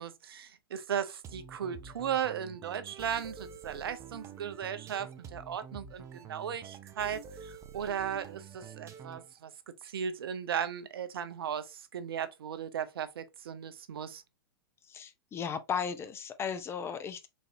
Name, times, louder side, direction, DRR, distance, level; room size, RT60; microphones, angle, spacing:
voice 1, 0.0-9.5 9.8-14.2, right 8 dB, 75° right, 0.6 m, -36 dB
sound 1, 1.2-9.4, right 7 dB, 25° right, 0.5 m, -48 dB
voice 2, 14.9-17.3, left 7 dB, 20° left, 0.5 m, -36 dB
4.1 x 2.6 x 2.6 m
hypercardioid pair, 110°, 12 cm